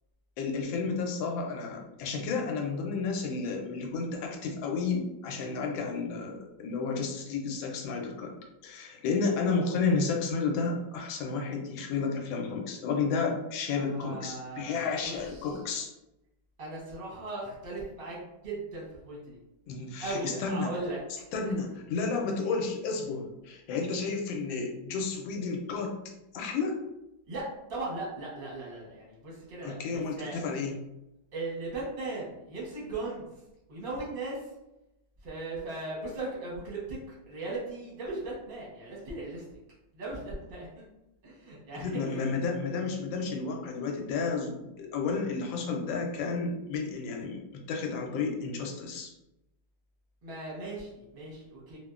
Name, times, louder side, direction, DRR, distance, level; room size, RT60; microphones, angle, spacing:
voice 1, 0.4-8.3 8.6-15.9 19.7-20.7 21.3-26.0 26.3-26.8 29.6-30.7 41.8-49.1, left 4 dB, 80° left, 2 dB, 1.3 m, -32 dB
voice 2, 13.7-15.6 16.6-19.4 20.0-21.0 21.4-21.5 27.3-27.4 27.7-30.4 31.3-33.3 33.7-34.5 35.2-37.0 37.3-39.4 39.9-40.8 41.2-42.3 50.2-51.8, right 2 dB, 45° right, -5 dB, 0.7 m, -38 dB
3.4 x 2.1 x 2.3 m, 0.92 s
omnidirectional pair, 2.1 m